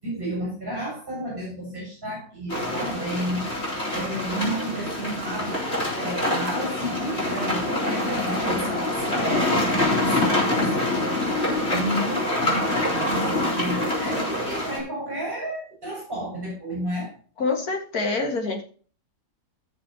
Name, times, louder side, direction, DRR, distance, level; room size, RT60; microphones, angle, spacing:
voice 1, 0.0-3.5 3.9-11.3 11.7-13.1 13.5-17.1, right 1 dB, 30° right, 6.7 m, -32 dB
sound 1, 2.5-14.8, left 1 dB, 40° left, 4.4 m, -25 dB
voice 2, 17.4-18.6, left 3 dB, 65° left, 2.5 m, -26 dB
16.5 x 6.6 x 2.9 m
omnidirectional pair, 1.7 m